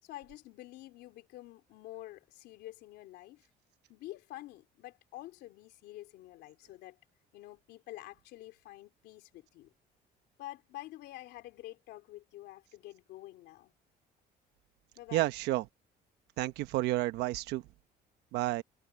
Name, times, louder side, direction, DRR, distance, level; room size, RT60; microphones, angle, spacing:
voice 1, 0.0-3.5 3.9-7.0 7.3-9.7 10.4-13.7 14.9-15.3, left 16 dB, 85° left, 3.4 m, -48 dB
voice 2, 15.1-15.6 16.4-17.6 18.3-18.6, right 17 dB, 90° right, 1.1 m, -30 dB
cardioid pair, 110°, 17 cm